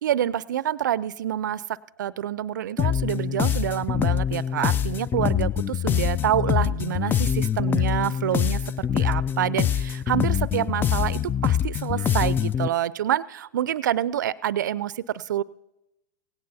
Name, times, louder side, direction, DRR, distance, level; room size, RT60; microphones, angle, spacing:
voice 1, 0.0-15.4, right 11 dB, 70° right, 20 dB, 0.5 m, -27 dB
sound 1, 2.8-12.7, left 9 dB, 20° left, 0.3 m, -24 dB
17.5 x 17.0 x 2.7 m, 0.89 s
hypercardioid pair, 105°, 10 cm